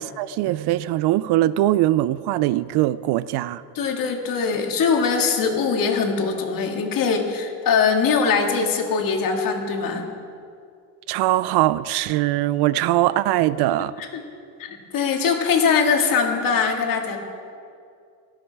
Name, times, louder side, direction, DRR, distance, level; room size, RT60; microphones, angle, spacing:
voice 1, 0.0-3.6 11.1-13.9, right 15 dB, 60° right, 0.5 m, -21 dB
voice 2, 3.7-10.1 14.0-14.2 14.6-17.2, left 5 dB, 45° left, 2.1 m, -22 dB
18.0 x 13.5 x 4.7 m
cardioid pair, 150°, 45 cm